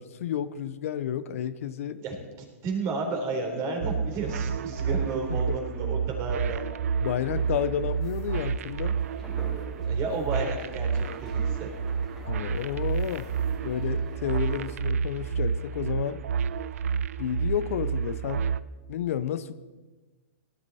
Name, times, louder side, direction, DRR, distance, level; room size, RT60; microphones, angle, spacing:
voice 1, 0.0-2.0 4.9-5.0 5.3-5.4 7.0-9.0 12.2-13.3 13.6-16.2 17.2-18.5 18.9-19.5, left 9 dB, 65° left, 13 dB, 0.8 m, -31 dB
voice 2, 2.0-6.6 9.9-11.7, right 3 dB, 35° right, 2 dB, 3.8 m, -32 dB
sound 1, 3.8-18.6, right 6 dB, 70° right, 0.6 m, -30 dB
sound 2, 7.2-14.7, equal, ahead, 3.1 m, -47 dB
18.5 x 11.5 x 4.2 m, 1.2 s
hypercardioid pair, 125°, 8 cm